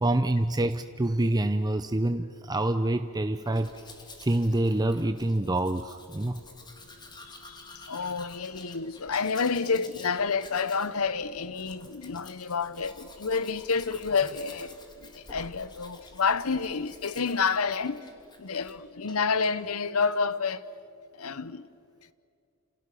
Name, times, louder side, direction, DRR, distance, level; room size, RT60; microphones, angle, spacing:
voice 1, 0.0-3.7 4.2-6.4, right 1 dB, 20° right, 0.7 m, -26 dB
Domestic sounds home sounds, 3.4-18.8 19.1-19.5, left 2 dB, 20° left, 2.9 m, -50 dB
voice 2, 7.9-14.7 15.0-18.0 18.4-20.6 21.2-21.6, left 5 dB, 75° left, 0.9 m, -29 dB
29.0 x 28.5 x 7.0 m
head